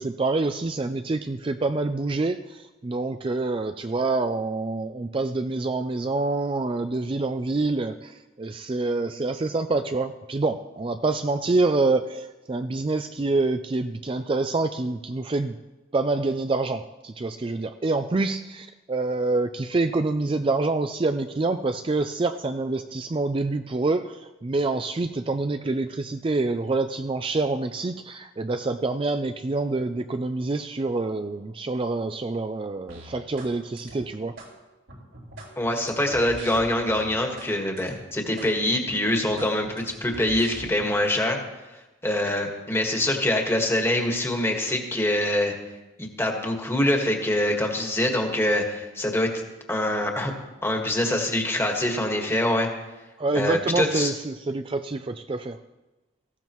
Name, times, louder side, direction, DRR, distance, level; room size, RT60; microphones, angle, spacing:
voice 1, 0.0-15.6 15.9-34.4 53.2-55.6, right 3 dB, 25° right, 8 dB, 0.4 m, -26 dB
sound 1, 32.9-33.5 33.8-34.5 34.9-37.5 37.8-38.0 38.4-38.5 38.9-40.9, right 1 dB, 85° right, 4.4 m, -42 dB
voice 2, 35.6-41.4 42.0-45.5 46.0-49.3 49.7-50.3 50.6-52.7 53.3-54.1, left 1 dB, 15° left, 2 dB, 1.6 m, -24 dB
18.0 x 15.5 x 3.1 m, 1.1 s
head